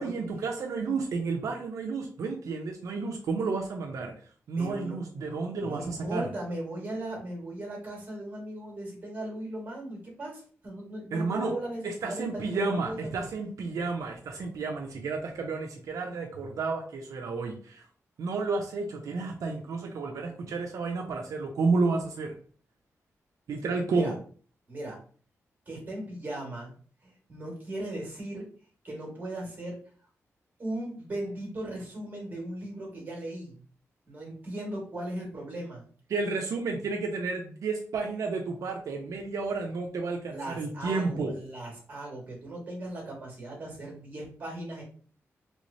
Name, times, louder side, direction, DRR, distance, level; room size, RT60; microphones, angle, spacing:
voice 1, 0.0-4.1 4.5-6.3 11.1-11.5 11.8-17.9 18.2-22.4 23.5-24.2 36.1-41.3, right 4 dB, 85° right, 2 dB, 0.5 m, -31 dB
voice 2, 4.6-5.0 5.6-13.1 24.0-24.1 24.7-25.0 25.6-26.7 27.0-28.4 28.8-29.8 30.6-33.6 34.1-35.9 40.3-44.8, right 1 dB, 30° right, -1 dB, 1.6 m, -37 dB
3.3 x 3.1 x 2.7 m, 0.43 s
wide cardioid pair, 165°, 6 cm